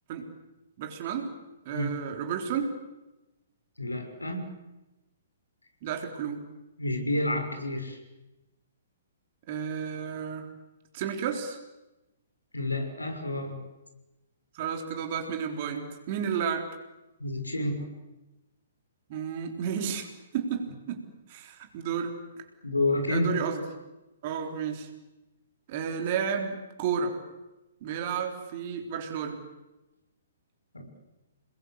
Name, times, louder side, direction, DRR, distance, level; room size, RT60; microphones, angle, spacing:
voice 1, 0.8-1.3 1.7-2.8 5.8-6.4 9.5-10.5 10.9-11.6 14.5-16.7 19.1-22.2 23.1-23.6 24.2-24.9 25.7-27.2 27.8-29.4, right 7 dB, 40° right, 3 dB, 3.9 m, -32 dB
voice 2, 3.8-4.5 6.8-8.0 12.5-13.6 17.2-17.8 22.6-23.4 30.7-31.0, left 2 dB, 80° left, 4 dB, 6.4 m, -29 dB
29.0 x 21.5 x 8.2 m, 1.0 s
figure-of-eight pair, 120°, 0 cm